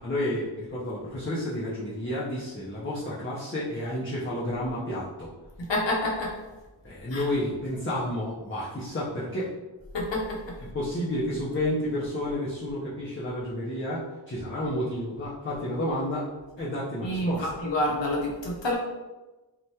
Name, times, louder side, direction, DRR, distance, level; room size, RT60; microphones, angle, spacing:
voice 1, 0.0-5.3 6.8-9.5 10.7-16.3 16.6-17.5, left 1 dB, 25° left, -8 dB, 0.6 m, -31 dB
voice 2, 5.6-6.4 7.1-7.2 9.9-10.6 17.0-18.8, left 1 dB, 70° left, -3 dB, 0.8 m, -28 dB
3.3 x 2.2 x 2.7 m, 1.1 s
wide cardioid pair, 70°, 46 cm